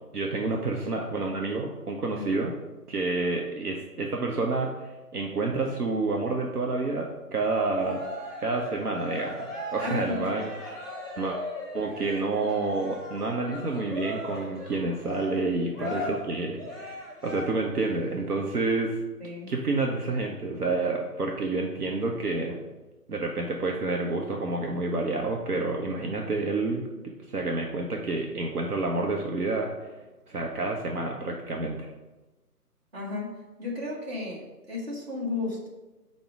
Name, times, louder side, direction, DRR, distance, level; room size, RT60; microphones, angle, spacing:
voice 1, 0.1-2.5 2.9-8.0 8.4-10.9 11.2-11.4 11.7-19.0 19.5-22.6 23.1-26.9 27.3-30.0 30.3-31.9, right 3 dB, 70° right, 1 dB, 0.7 m, -29 dB
voice 2, 2.2-2.5 9.8-10.2 15.8-16.1 19.2-19.5 32.9-35.7, left 3 dB, 40° right, -4 dB, 1.2 m, -34 dB
Cheering, 7.7-17.8, left 1 dB, ahead, 0.4 m, -38 dB
5.1 x 2.0 x 4.7 m, 1.1 s
figure-of-eight pair, 150°, 47 cm